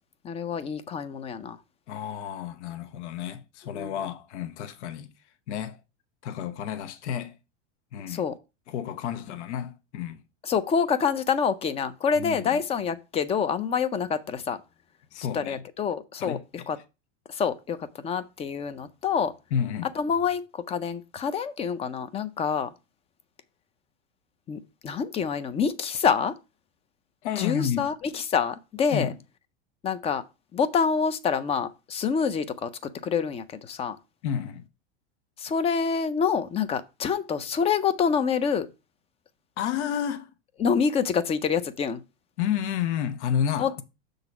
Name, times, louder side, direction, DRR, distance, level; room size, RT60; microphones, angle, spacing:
voice 1, 0.2-1.6 3.7-3.9 8.1-8.3 10.4-14.6 15.3-16.8 17.3-17.8 18.0-19.3 20.0-22.7 24.5-26.3 27.4-29.1 29.8-30.2 30.5-32.7 33.0-34.0 35.4-38.7 40.6-42.0 43.6-43.7, left 6 dB, 20° left, 0.4 m, -26 dB
voice 2, 1.9-5.1 5.5-5.8 6.2-7.3 7.9-8.3 8.7-10.2 12.1-12.6 15.1-15.6 16.2-16.4 19.5-19.9 27.2-27.9 28.9-29.2 34.2-34.6 39.6-40.3 42.4-43.8, left 9 dB, 75° left, 1.0 m, -31 dB
6.6 x 3.9 x 5.9 m
supercardioid pair, 140°, 35 cm